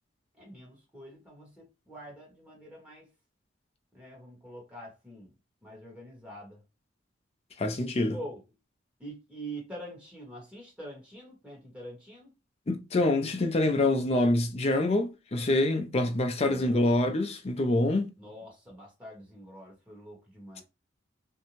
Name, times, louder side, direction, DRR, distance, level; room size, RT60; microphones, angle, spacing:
voice 1, 0.4-3.1 3.9-5.3 5.6-6.6 8.1-8.4 9.0-12.3 16.4-16.8 18.2-20.6, right 1 dB, 5° right, 1.2 m, -45 dB
voice 2, 7.6-8.2 12.7-18.1, left 2 dB, 35° left, 0.5 m, -26 dB
2.6 x 2.2 x 2.9 m
head